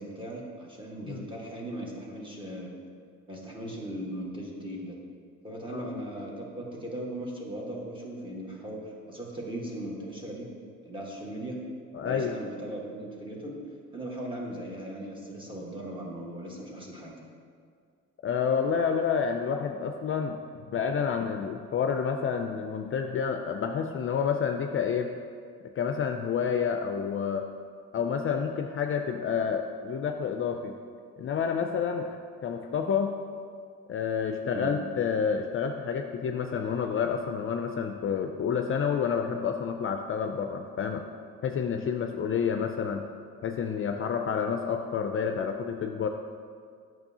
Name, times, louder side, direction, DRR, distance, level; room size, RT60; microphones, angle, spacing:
voice 1, 0.0-2.7 3.3-5.0 5.4-8.8 9.1-10.4 10.8-11.6 12.0-13.5 13.9-17.2 34.5-34.7, right 1 dB, 15° right, -3 dB, 1.4 m, -38 dB
voice 2, 11.9-12.4 18.2-20.4 20.7-25.1 25.8-27.5 27.9-30.7 31.2-32.2 32.4-33.1 33.9-41.0 41.4-43.1 43.4-46.1, left 6 dB, 45° left, 5 dB, 0.4 m, -29 dB
8.7 x 6.0 x 2.8 m, 2.1 s
cardioid pair, 90°, 30 cm